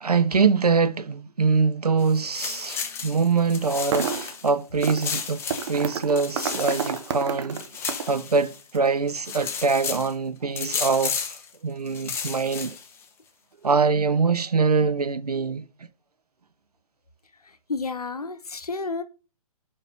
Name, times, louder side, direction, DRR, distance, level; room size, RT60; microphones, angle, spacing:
voice 1, 0.0-11.4 11.6-12.8 13.6-15.7, right 4 dB, 90° right, 0.5 m, -24 dB
sound 1, 2.0-4.5 4.8-8.8 9.1-10.1 10.6-11.5 11.9-13.0, left 6 dB, 15° left, 0.7 m, -33 dB
sound 2, 3.7-4.4 4.8-5.2 5.5-8.2, right 7 dB, 50° right, 0.8 m, -29 dB
voice 2, 17.7-19.0, left 4 dB, 80° left, 0.9 m, -30 dB
4.8 x 4.3 x 5.6 m
figure-of-eight pair, 125°, 19 cm